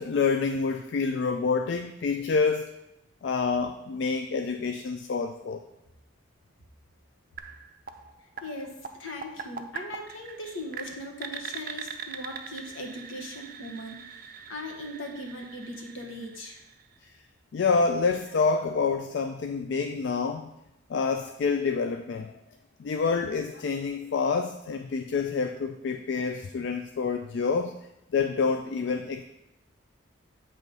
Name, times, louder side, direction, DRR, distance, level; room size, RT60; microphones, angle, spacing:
voice 1, 0.0-2.7 3.2-5.6 17.5-20.5 20.9-22.3 22.8-27.7 28.1-29.2, left 5 dB, 60° left, 6 dB, 0.3 m, -27 dB
sound 1, 7.4-17.2, right 6 dB, 45° right, 0.4 m, -42 dB
voice 2, 8.4-16.6, left 1 dB, 75° left, 2 dB, 1.1 m, -39 dB
7.7 x 3.1 x 5.3 m, 0.88 s
head